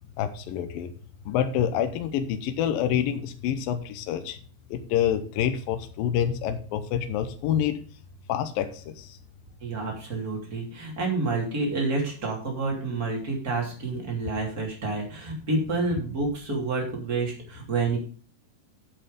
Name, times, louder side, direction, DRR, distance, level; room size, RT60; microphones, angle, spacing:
voice 1, 0.2-0.9 1.3-4.4 4.7-7.8 8.3-9.2, left 9 dB, 75° left, 9 dB, 2.5 m, -27 dB
voice 2, 9.6-18.0, right 3 dB, 25° right, 0 dB, 3.1 m, -29 dB
8.8 x 7.8 x 5.1 m, 0.42 s
omnidirectional pair, 4.3 m